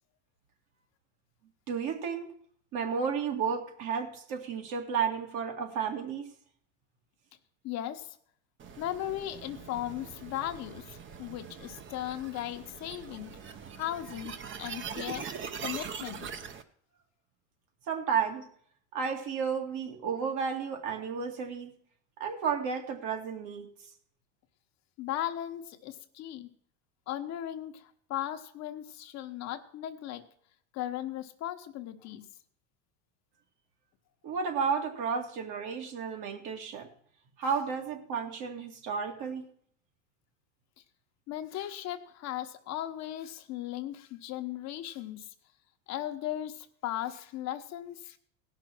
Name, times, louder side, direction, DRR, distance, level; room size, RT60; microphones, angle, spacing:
voice 1, 1.7-2.3 2.7-6.3 17.9-18.5 18.9-21.7 22.2-23.7 34.2-36.9 37.4-39.5, right 6 dB, 55° right, 4 dB, 2.4 m, -32 dB
voice 2, 7.6-8.2 8.8-13.4 13.7-15.3 15.6-16.3 25.0-26.5 27.1-30.2 30.7-32.2 41.3-45.3 45.9-48.2, left 12 dB, 45° left, 7 dB, 1.1 m, -37 dB
sound 1, 8.6-16.6, right 6 dB, 35° right, 1.0 m, -42 dB
17.0 x 6.0 x 6.1 m, 0.62 s
supercardioid pair, 125°, 36 cm